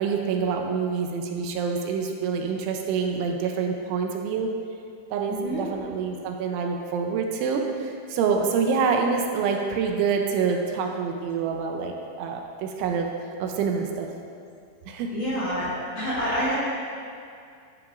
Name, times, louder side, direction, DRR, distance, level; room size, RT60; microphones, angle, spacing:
voice 1, 0.0-4.5 5.1-13.1 13.4-14.1 14.9-15.1, right 5 dB, 80° right, 2 dB, 3.1 m, -26 dB
voice 2, 5.3-5.6 15.1-15.7 15.9-16.5, equal, 30° left, -10 dB, 2.8 m, -27 dB
13.0 x 11.0 x 2.5 m, 2.3 s
omnidirectional pair, 5.5 m